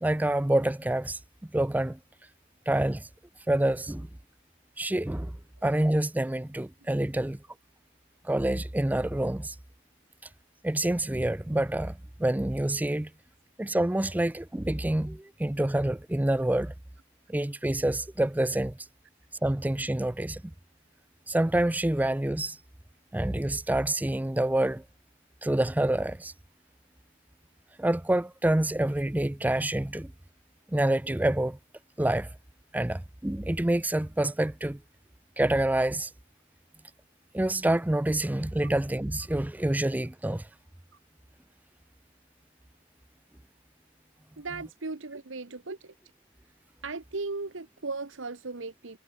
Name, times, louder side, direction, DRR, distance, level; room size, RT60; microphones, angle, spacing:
voice 1, 0.0-2.0 2.7-3.1 3.5-4.1 4.8-5.4 5.6-7.4 8.2-9.6 10.6-13.1 13.6-16.7 17.3-18.8 19.4-20.5 21.3-22.6 23.1-24.8 25.4-26.3 27.8-30.1 30.7-31.6 32.0-32.3 32.7-34.8 35.4-36.1 37.3-40.5, right 1 dB, 10° right, 0.4 m, -27 dB
voice 2, 44.4-45.9 46.8-49.0, right 3 dB, 70° right, 1.2 m, -37 dB
head